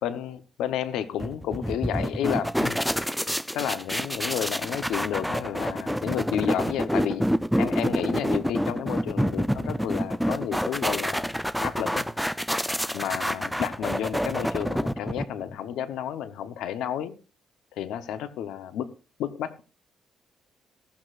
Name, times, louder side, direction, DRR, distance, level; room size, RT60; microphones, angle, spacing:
voice 1, 0.0-3.2 3.5-7.3 7.6-11.3 11.6-12.3 12.9-17.1 17.7-18.9 19.2-19.6, left 10 dB, 85° left, 0.8 m, -31 dB
sound 1, 1.2-15.5, equal, ahead, 0.5 m, -28 dB
15.5 x 13.0 x 2.5 m
cardioid pair, 90°, 0 cm